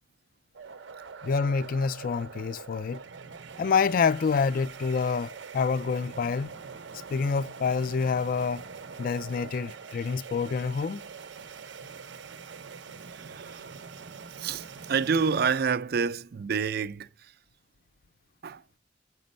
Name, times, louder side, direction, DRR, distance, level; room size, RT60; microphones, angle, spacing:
sound 1, 0.5-15.5, right 5 dB, 90° right, 0.7 m, -44 dB
voice 1, 1.2-3.0 3.6-6.6 7.1-8.6 9.0-11.0, left 5 dB, 50° left, 0.4 m, -27 dB
voice 2, 13.2-13.7 14.4-17.1 18.4-18.6, right 5 dB, 60° right, 0.4 m, -28 dB
7.7 x 5.1 x 5.3 m
head